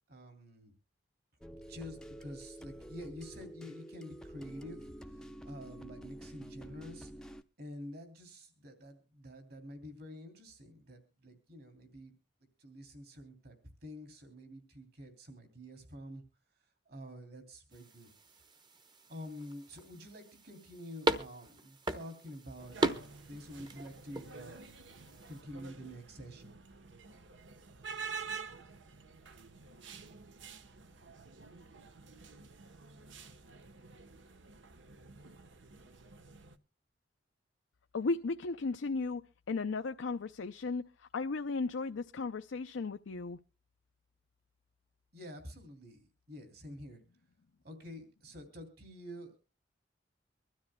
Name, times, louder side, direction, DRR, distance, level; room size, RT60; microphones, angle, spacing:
voice 1, 0.1-0.7 1.7-7.1 7.6-12.1 12.6-13.6 13.8-16.2 16.9-18.1 19.1-26.6 45.1-47.0 47.6-49.4, equal, 55° right, 3.0 m, -48 dB
sound 1, 1.4-7.4, right 1 dB, 5° left, 0.6 m, -49 dB
sound 2, 17.7-25.4, right 2 dB, 25° right, 1.0 m, -39 dB
sound 3, 22.6-36.6, right 5 dB, 75° right, 1.1 m, -49 dB
voice 2, 37.9-39.2 39.5-43.4, left 3 dB, 80° left, 0.5 m, -35 dB
24.0 x 13.0 x 2.2 m
head